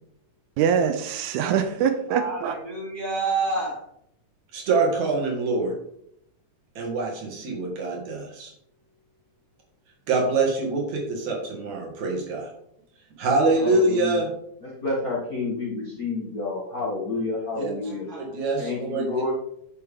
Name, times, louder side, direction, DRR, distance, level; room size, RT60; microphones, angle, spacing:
voice 1, 0.6-2.5, right 7 dB, 85° right, 8 dB, 2.1 m, -23 dB
voice 2, 2.1-3.9 17.8-18.4 19.1-19.2, right 3 dB, 15° right, -6 dB, 4.1 m, -29 dB
voice 3, 4.5-5.7 6.8-8.5 10.1-12.5 13.2-14.3 17.6-17.7 18.2-19.0, right 3 dB, 65° right, -1 dB, 3.1 m, -24 dB
voice 4, 13.6-14.2 14.6-18.0 18.6-19.3, left 3 dB, 40° left, -4 dB, 1.4 m, -29 dB
9.9 x 6.9 x 3.6 m, 0.74 s
omnidirectional pair, 3.5 m